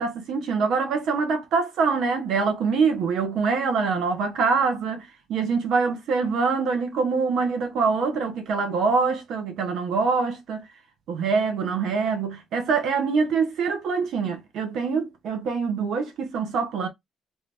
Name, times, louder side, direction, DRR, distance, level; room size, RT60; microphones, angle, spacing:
voice 1, 0.0-10.7 11.1-16.9, right 5 dB, 80° right, 0.8 m, -24 dB
3.1 x 2.7 x 3.3 m
cardioid pair, 90°, 0 cm